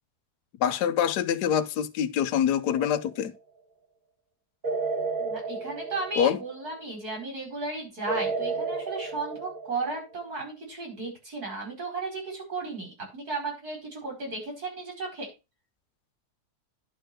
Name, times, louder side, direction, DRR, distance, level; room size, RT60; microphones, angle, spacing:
voice 1, 0.6-3.3 6.2-6.4, left 9 dB, 90° left, 1.3 m, -25 dB
sound 1, 2.7-3.3 4.6-6.7 8.1-10.1, right 4 dB, 35° right, 1.8 m, -32 dB
voice 2, 5.2-15.3, right 3 dB, 70° right, 5.5 m, -35 dB
11.0 x 4.4 x 6.3 m
omnidirectional pair, 1.7 m